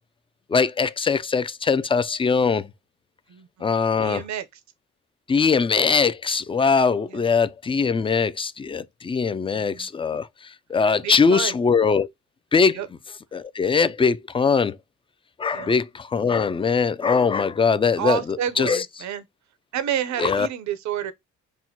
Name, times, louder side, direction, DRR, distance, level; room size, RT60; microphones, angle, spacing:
voice 1, 0.5-2.7 3.6-4.2 5.3-10.3 10.7-12.1 12.5-12.8 13.3-14.8 15.4-18.8 20.2-20.5, left 5 dB, 20° left, 0.3 m, -21 dB
voice 2, 3.3-3.7 4.0-4.5 7.1-7.3 9.5-9.9 11.0-11.6 12.7-12.9 15.5-15.7 18.0-19.2 19.7-21.1, right 10 dB, 70° right, 0.7 m, -29 dB
6.0 x 2.1 x 2.8 m
cardioid pair, 90°, 30 cm